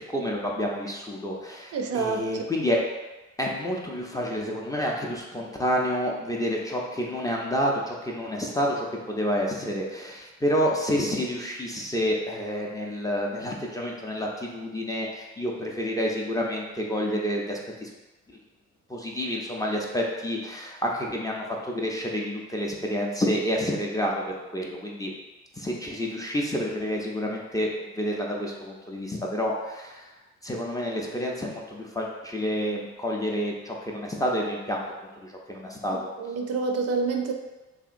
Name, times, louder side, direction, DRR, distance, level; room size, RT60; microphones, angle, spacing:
voice 1, 0.0-2.8 3.4-17.9 18.9-25.1 25.5-30.1 30.4-34.8 35.2-36.1, equal, 10° left, -2 dB, 0.4 m, -29 dB
voice 2, 1.7-2.5 35.9-37.3, right 4 dB, 55° right, 3 dB, 0.4 m, -28 dB
2.9 x 2.7 x 2.5 m, 1.1 s
cardioid pair, 90°, 30 cm